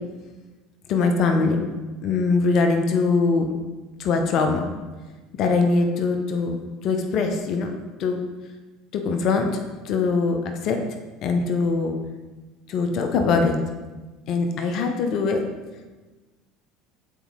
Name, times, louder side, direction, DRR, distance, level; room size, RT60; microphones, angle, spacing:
voice 1, 0.9-1.6 2.0-3.5 4.0-4.6 5.4-6.6 6.8-8.2 8.9-10.8 11.2-12.0 12.7-13.6 14.3-15.4, left 4 dB, 50° left, 4 dB, 0.7 m, -22 dB
7.0 x 4.6 x 3.7 m, 1.2 s
hypercardioid pair, 70°, 0 cm